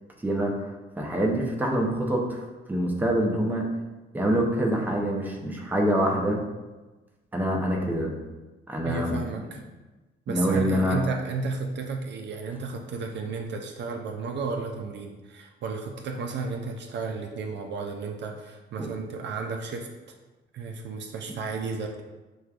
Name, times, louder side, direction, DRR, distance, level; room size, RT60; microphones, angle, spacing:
voice 1, 0.2-2.4 2.7-3.7 4.1-6.4 7.3-8.1 8.7-9.5 10.3-11.0 18.8-18.9, right 1 dB, 10° right, -1 dB, 0.7 m, -25 dB
voice 2, 8.8-9.6 10.3-19.9 20.5-22.0, right 4 dB, 65° right, 3 dB, 0.4 m, -33 dB
6.1 x 2.3 x 2.4 m, 1.2 s
cardioid pair, 90°, 20 cm